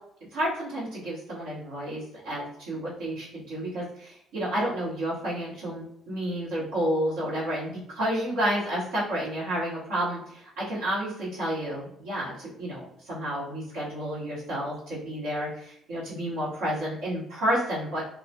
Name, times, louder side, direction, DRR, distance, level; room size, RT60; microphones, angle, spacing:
voice 1, 0.3-18.0, equal, 70° right, -8 dB, 0.9 m, -30 dB
2.3 x 2.2 x 2.6 m, 0.71 s
hypercardioid pair, 50°, 0 cm